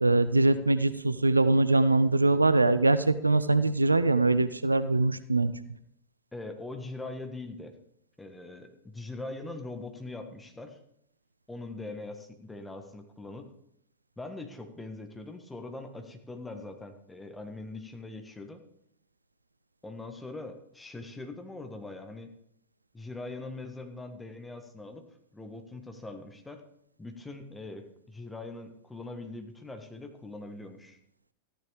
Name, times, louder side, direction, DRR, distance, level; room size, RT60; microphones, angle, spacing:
voice 1, 0.0-5.5, right 2 dB, 80° right, 13 dB, 0.5 m, -23 dB
voice 2, 6.3-7.7 8.2-10.8 11.5-13.5 14.2-18.6 19.8-22.3 22.9-25.0 25.3-26.6 27.0-31.0, left 2 dB, 10° left, 5 dB, 1.5 m, -42 dB
14.0 x 10.0 x 3.5 m, 0.72 s
figure-of-eight pair, 90°, 0 cm